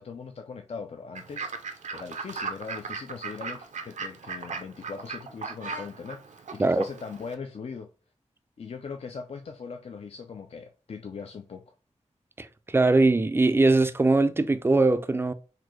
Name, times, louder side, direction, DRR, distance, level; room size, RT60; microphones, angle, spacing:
voice 1, 0.0-1.5 1.9-7.9 8.6-11.6, left 5 dB, 55° left, 0.4 m, -40 dB
Fowl / Bird, 1.1-7.3, right 4 dB, 85° right, 0.5 m, -38 dB
voice 2, 12.7-15.3, right 2 dB, 20° right, 0.3 m, -21 dB
4.0 x 2.6 x 2.9 m
wide cardioid pair, 85°, 12 cm